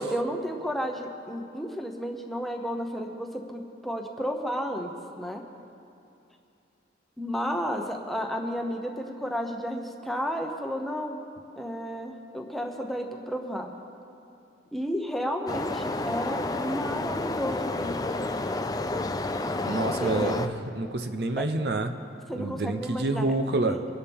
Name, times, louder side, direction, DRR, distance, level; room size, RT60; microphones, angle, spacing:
voice 1, 0.0-5.4 7.2-11.2 11.6-13.7 14.7-18.0 20.0-20.3 21.4-21.5 22.3-23.3 23.7-23.9, equal, ahead, 2 dB, 1.0 m, -32 dB
sound 1, 15.5-20.5, left 2 dB, 20° left, 0.5 m, -30 dB
voice 2, 19.6-21.9 22.3-23.8, right 2 dB, 60° right, 8 dB, 0.7 m, -28 dB
24.5 x 11.5 x 3.6 m, 2.6 s
head